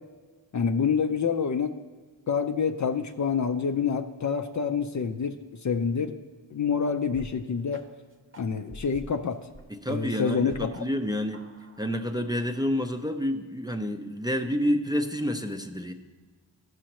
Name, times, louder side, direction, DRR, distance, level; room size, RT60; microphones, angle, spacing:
voice 1, 0.5-1.8 2.3-6.2 6.5-7.8 8.4-9.5 9.9-10.8, left 6 dB, 40° left, 6 dB, 0.5 m, -27 dB
sound 1, 7.1-7.3 7.7-7.8 8.3-9.6 9.9-10.8 11.1-12.6, equal, 25° right, 0.9 m, -46 dB
voice 2, 9.7-11.4 11.8-15.9, equal, 10° right, 4 dB, 0.5 m, -29 dB
15.0 x 6.3 x 3.0 m, 1.4 s
cardioid pair, 90°, 46 cm